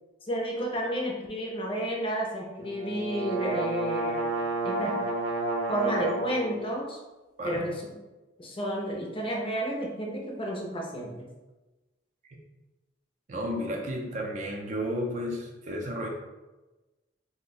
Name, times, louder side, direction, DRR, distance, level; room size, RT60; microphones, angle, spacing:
voice 1, 0.3-4.3 4.6-5.0 5.7-7.0 7.4-7.8 8.4-11.1, right 1 dB, 25° left, -1 dB, 0.5 m, -31 dB
sound 1, 2.6-6.5, right 2 dB, 85° right, 0.6 m, -30 dB
voice 2, 13.3-16.1, equal, 40° right, 0 dB, 0.5 m, -32 dB
2.6 x 2.1 x 4.0 m, 1.1 s
head